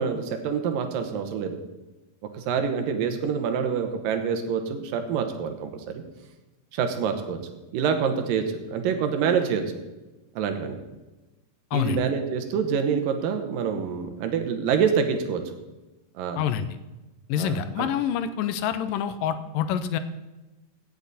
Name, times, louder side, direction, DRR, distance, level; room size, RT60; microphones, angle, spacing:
voice 1, 0.0-1.6 2.4-6.0 6.7-9.8 10.4-10.8 11.7-15.5 16.2-16.4 17.4-17.9, right 6 dB, 90° right, 6 dB, 2.8 m, -26 dB
voice 2, 11.7-12.0 16.4-16.7 17.3-20.0, left 9 dB, 85° left, 12 dB, 2.3 m, -26 dB
17.0 x 8.1 x 4.1 m, 1.1 s
omnidirectional pair, 3.9 m